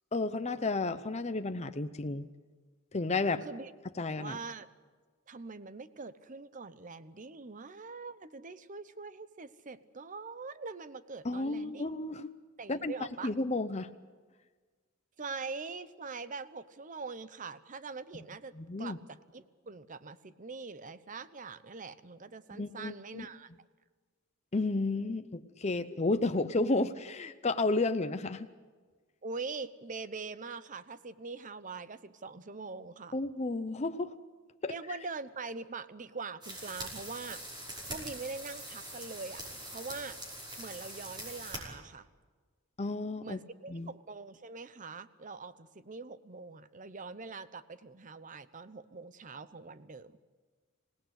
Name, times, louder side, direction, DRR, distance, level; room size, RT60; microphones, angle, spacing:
voice 1, 0.1-2.3 2.9-3.4 4.0-4.4 11.2-12.3 12.7-12.9 13.2-13.9 18.6-19.0 22.5-23.3 24.5-28.5 33.1-34.1 34.6-34.7 42.8-43.4 43.7-43.9, left 3 dB, 35° left, 10 dB, 0.7 m, -32 dB
voice 2, 4.2-4.7 5.3-11.9 12.6-13.3 15.2-18.5 18.8-23.5 29.2-33.2 34.7-37.4 37.9-39.4 39.7-40.2 40.6-42.1 43.2-50.2, right 4 dB, 40° right, 14 dB, 0.9 m, -43 dB
sound 1, 36.4-41.6, right 1 dB, 20° right, 5.6 m, -43 dB
26.0 x 18.0 x 8.2 m, 1.4 s
head